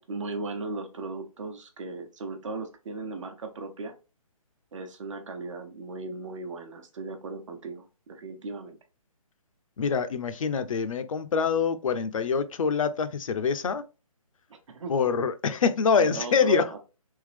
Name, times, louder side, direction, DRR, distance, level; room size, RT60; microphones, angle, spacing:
voice 1, 0.0-3.9 4.7-8.8 14.5-14.9 16.0-16.8, right 3 dB, 55° right, 0.9 m, -36 dB
voice 2, 9.8-13.8 14.9-16.7, left 6 dB, 60° left, 0.6 m, -25 dB
3.6 x 2.9 x 3.3 m
hypercardioid pair, 155°, 19 cm